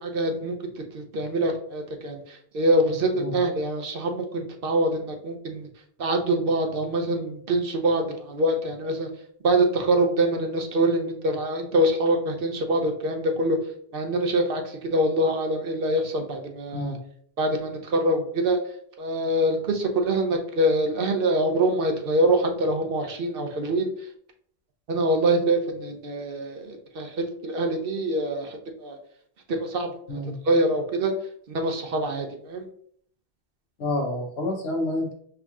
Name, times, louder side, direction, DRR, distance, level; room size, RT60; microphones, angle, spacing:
voice 1, 0.0-0.5 0.9-2.2 2.5-5.7 6.0-9.1 9.4-13.6 13.9-16.9 17.4-18.6 19.0-23.9 24.9-27.1 27.4-29.0 29.5-30.2 30.5-31.1 31.5-32.7, right 1 dB, 60° right, 4 dB, 0.8 m, -24 dB
voice 2, 33.8-35.1, left 1 dB, 75° left, 3 dB, 1.1 m, -28 dB
5.8 x 2.8 x 2.3 m, 0.63 s
omnidirectional pair, 1.1 m